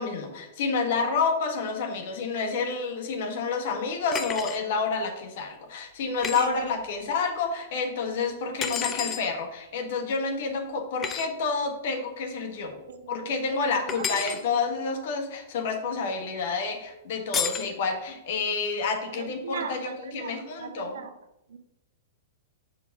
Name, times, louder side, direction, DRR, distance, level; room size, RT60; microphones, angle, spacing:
voice 1, 0.0-12.8 13.1-19.9 20.1-21.0, left 4 dB, 55° left, 1.4 m, -29 dB
sound 1, 4.1-4.6 6.2-6.5 8.6-9.2 11.0-11.3 13.9-14.4 17.3-17.7, left 7 dB, 25° left, 0.7 m, -30 dB
voice 2, 6.3-6.7 12.9-14.4 19.1-21.1 21.5-21.6, right 6 dB, 65° right, 0.7 m, -38 dB
5.7 x 4.9 x 5.7 m
figure-of-eight pair, 105°, 0 cm